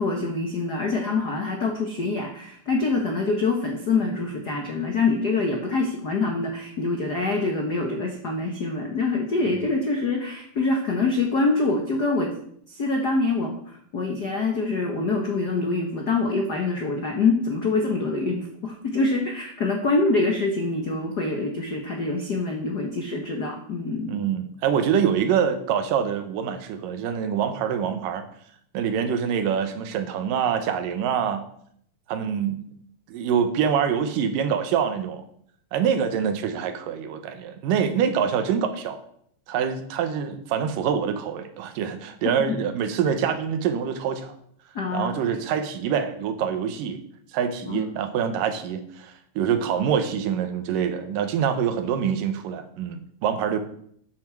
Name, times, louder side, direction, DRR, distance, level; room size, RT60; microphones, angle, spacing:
voice 1, 0.0-12.3 12.7-24.2 44.7-45.2 47.6-47.9, left 3 dB, 75° left, 2 dB, 0.9 m, -25 dB
voice 2, 24.1-28.2 28.7-31.4 32.1-32.6 33.1-35.2 35.7-39.0 39.5-44.4 44.9-47.0 47.3-53.6, right 7 dB, 80° right, 9 dB, 2.7 m, -25 dB
9.6 x 7.6 x 6.1 m, 0.66 s
omnidirectional pair, 3.8 m